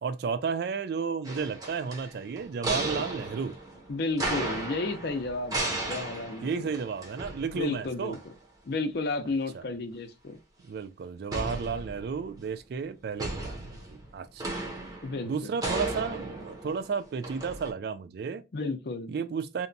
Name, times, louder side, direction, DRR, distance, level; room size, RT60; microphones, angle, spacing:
voice 1, 0.0-3.6 6.4-8.2 9.5-9.6 10.6-14.4 15.2-18.4 19.1-19.7, right 5 dB, 55° right, 0.3 m, -33 dB
sound 1, 1.2-7.9 8.1-8.2 11.3-12.4 13.2-17.7, right 2 dB, 20° right, 0.6 m, -35 dB
voice 2, 3.9-6.7 7.5-8.2 8.6-10.4 15.0-15.5 18.5-19.1, left 3 dB, 60° left, 0.5 m, -32 dB
2.8 x 2.2 x 2.5 m
head